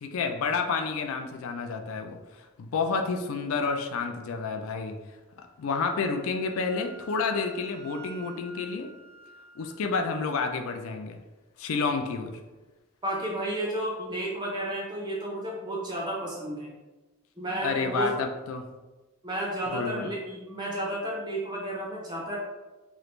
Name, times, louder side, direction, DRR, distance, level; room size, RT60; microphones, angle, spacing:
voice 1, 0.0-5.0 5.6-8.9 9.6-11.2 11.6-12.3 17.6-18.6 19.7-20.1, left 4 dB, 70° left, 5 dB, 0.4 m, -30 dB
Wind instrument woodwind instrument, 5.7-9.8, right 3 dB, 50° left, 1.0 m, -49 dB
voice 2, 13.0-16.7 17.4-18.1 19.2-22.4, right 1 dB, 20° right, -2 dB, 0.4 m, -32 dB
3.1 x 2.4 x 3.0 m, 1.2 s
head